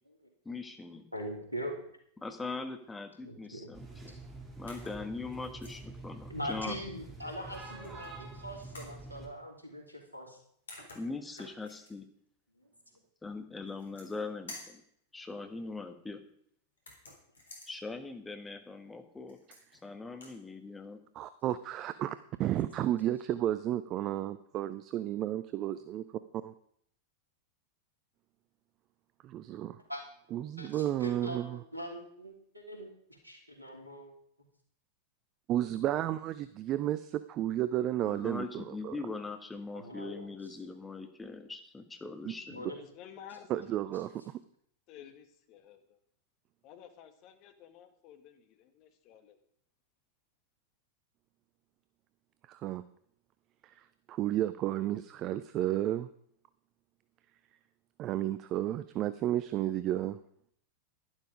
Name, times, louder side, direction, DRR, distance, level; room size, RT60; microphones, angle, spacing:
voice 1, 0.4-1.1 2.2-4.1 4.6-6.7 10.9-12.1 13.2-14.8 15.1-16.2 17.7-19.4 19.8-21.0 38.0-42.7, left 3 dB, 10° left, 7 dB, 1.5 m, -41 dB
voice 2, 1.1-1.7 3.2-3.7 6.3-10.4 29.9-30.0 30.6-32.9 33.2-34.1 39.7-40.3 42.5-42.7, equal, 85° right, 2 dB, 3.1 m, -41 dB
sound 1, 3.7-9.3, right 3 dB, 15° right, 2.7 m, -47 dB
sound 2, 4.7-5.0 5.4-5.8 7.5-8.1 8.7-9.0 10.3-10.4 10.7-11.9 13.7-14.2 14.5-14.8 16.8-17.7 19.3-19.8 20.1-20.4, left 2 dB, 70° left, 3.7 m, -50 dB
voice 3, 21.1-26.0 26.4-26.5 29.2-29.8 30.3-31.6 35.5-39.0 42.2-42.3 43.5-44.4 52.5-52.8 53.6-56.1 58.0-60.2, right 12 dB, 35° right, 14 dB, 0.5 m, -32 dB
voice 4, 42.6-43.9 44.9-46.0 46.6-49.4, left 9 dB, 40° left, 8 dB, 1.7 m, -53 dB
11.5 x 11.5 x 5.0 m, 0.65 s
figure-of-eight pair, 90°, 0 cm